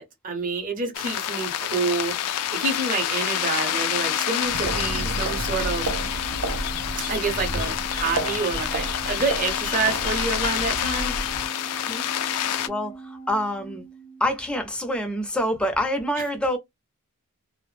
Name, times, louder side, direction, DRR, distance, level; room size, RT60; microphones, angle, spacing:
voice 1, 0.0-2.1 2.5-5.9 7.0-11.1, right 4 dB, 35° right, 0.8 m, -28 dB
sound 1, 0.9-12.7, left 11 dB, 90° left, 0.3 m, -28 dB
Organ, 3.3-14.6, right 4 dB, 60° left, 0.7 m, -42 dB
sound 2, 4.4-11.5, right 2 dB, 75° right, 0.5 m, -32 dB
voice 2, 12.7-13.8 14.2-16.6, equal, 5° left, 0.5 m, -26 dB
2.1 x 2.0 x 3.1 m
head